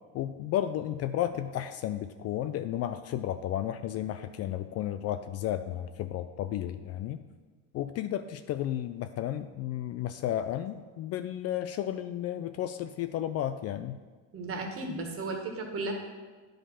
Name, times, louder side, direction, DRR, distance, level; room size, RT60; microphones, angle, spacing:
voice 1, 0.1-7.2 7.7-14.0, left 11 dB, 40° left, 10 dB, 0.4 m, -33 dB
voice 2, 14.3-15.9, right 2 dB, 35° right, 2 dB, 1.8 m, -34 dB
10.0 x 5.2 x 5.7 m, 1.3 s
supercardioid pair, 115°, 37 cm